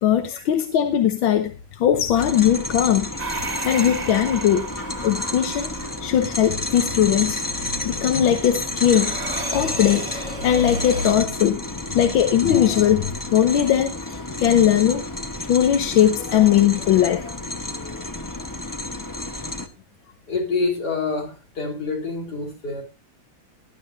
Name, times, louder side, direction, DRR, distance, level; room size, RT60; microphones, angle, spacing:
voice 1, 0.0-4.7 5.0-7.4 7.8-9.2 9.5-15.0 15.5-17.3 17.8-18.0, left 10 dB, 80° left, 8 dB, 1.7 m, -20 dB
sound 1, 2.2-19.7, left 2 dB, 20° left, 0.5 m, -31 dB
sound 2, 3.2-11.1, right 3 dB, 30° right, 0.8 m, -35 dB
voice 2, 20.3-22.8, left 4 dB, 55° left, 1 dB, 4.4 m, -26 dB
19.5 x 11.5 x 2.5 m, 0.29 s
omnidirectional pair, 2.2 m